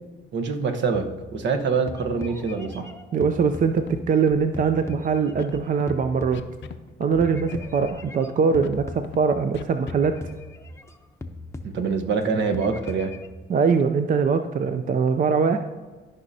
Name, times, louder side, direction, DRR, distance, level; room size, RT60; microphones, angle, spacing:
voice 1, 0.3-2.9 11.6-13.1, right 5 dB, 65° right, 6 dB, 0.9 m, -25 dB
sound 1, 0.9-1.5 1.9-4.2 4.5-6.9 7.2-9.6 9.9-11.0 11.2-12.2 12.5-13.3, left 2 dB, 15° left, 0.6 m, -39 dB
voice 2, 3.1-6.4 7.0-10.2 13.5-15.6, right 5 dB, 45° right, 8 dB, 0.4 m, -22 dB
Scratching (performance technique), 3.5-3.6 3.8-4.0 4.3-4.7 5.4-5.9 6.3-6.8 7.0-7.2 7.5-7.9 8.6-9.2 9.5-9.9, left 10 dB, 70° left, 0.5 m, -37 dB
13.0 x 5.4 x 2.7 m, 1.3 s
cardioid pair, 90°, 20 cm